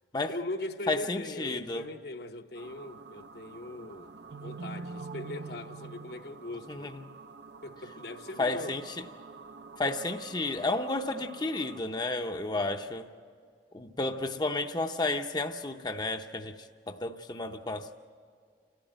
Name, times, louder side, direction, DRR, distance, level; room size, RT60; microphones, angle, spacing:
voice 1, 0.3-6.9 7.6-8.7 12.5-12.8, left 2 dB, 60° left, 0.9 m, -40 dB
voice 2, 0.9-1.9 6.7-7.0 8.4-8.9 9.8-13.1 13.7-18.0, left 2 dB, 25° left, 0.6 m, -32 dB
sound 1, 2.5-11.8, right 4 dB, 75° right, 0.6 m, -46 dB
29.5 x 13.0 x 8.9 m
head